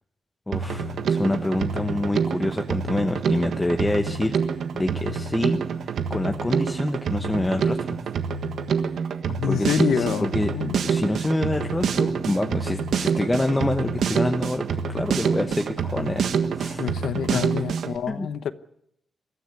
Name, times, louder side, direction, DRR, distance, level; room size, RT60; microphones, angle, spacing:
voice 1, 0.5-8.0 9.4-16.9 18.1-18.3, left 1 dB, 10° left, 1.0 m, -27 dB
Drum kit, 0.5-18.0, right 6 dB, 75° right, 1.5 m, -27 dB
voice 2, 9.3-10.8 16.8-18.5, left 8 dB, 85° left, 1.0 m, -27 dB
22.5 x 14.0 x 9.6 m
wide cardioid pair, 155°, 0 cm